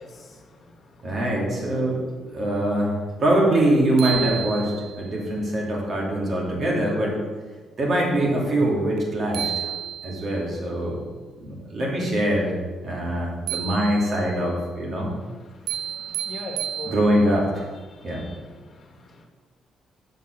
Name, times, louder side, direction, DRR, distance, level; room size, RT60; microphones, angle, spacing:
voice 1, 0.0-1.2 2.3-2.5 4.1-4.3 15.2-17.0 17.6-19.3, left 3 dB, 40° left, 1 dB, 1.5 m, -43 dB
voice 2, 1.0-4.7 4.9-7.2 7.8-9.7 10.0-11.0 11.4-12.6 12.8-15.1 16.8-17.6 18.0-18.2, right 1 dB, 50° right, -3 dB, 2.8 m, -23 dB
sound 1, 3.5-3.6 4.0-5.1 9.0-9.1 9.3-10.4 13.5-14.4 15.7-17.4, right 10 dB, 85° right, 0.3 m, -31 dB
7.3 x 5.6 x 6.6 m, 1.4 s
cardioid pair, 90°, 0 cm